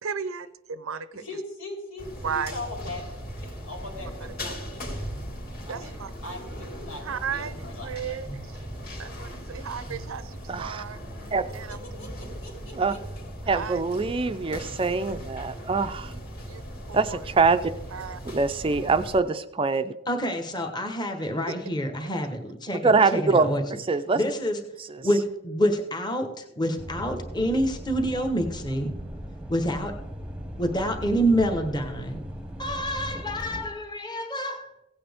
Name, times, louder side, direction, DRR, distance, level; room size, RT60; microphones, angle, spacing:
voice 1, 0.0-1.2 2.2-2.5 5.7-6.1 7.0-7.6 7.8-8.6 9.0-11.0 11.5-11.8 13.5-13.8 16.5-16.6 16.9-17.2 17.9-18.2, right 7 dB, 90° right, 0.6 m, -34 dB
voice 2, 1.1-3.0 3.4-5.1 5.7-5.9 6.2-7.0 7.3-8.2 11.7-12.1 12.4-13.0, left 2 dB, 80° left, 3.5 m, -40 dB
sound 1, 2.0-19.2, equal, 45° left, 2.5 m, -38 dB
voice 3, 10.5-10.8 11.3-11.4 12.8-12.9 13.5-16.1 16.9-17.7 18.2-19.9 22.8-23.5 23.9-24.2 25.0-25.1, right 4 dB, 25° right, 0.4 m, -24 dB
voice 4, 20.1-23.6 24.1-24.6 25.0-28.9 29.5-29.9 30.6-32.3 32.6-34.7, equal, 20° left, 1.2 m, -27 dB
sound 2, 26.8-33.7, equal, 5° right, 0.9 m, -38 dB
16.5 x 8.6 x 3.5 m
head